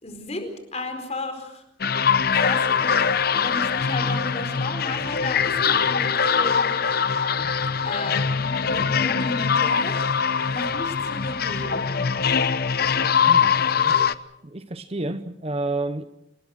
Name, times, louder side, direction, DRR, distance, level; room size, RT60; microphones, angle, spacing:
voice 1, 0.0-1.6 2.3-6.7 7.8-9.9 10.5-12.1, left 2 dB, 35° left, 4.5 m, -33 dB
sound 1, 1.8-14.1, left 6 dB, 50° left, 0.8 m, -22 dB
voice 2, 13.3-14.1 14.4-16.0, right 2 dB, 30° right, 0.8 m, -30 dB
27.5 x 20.0 x 6.4 m
head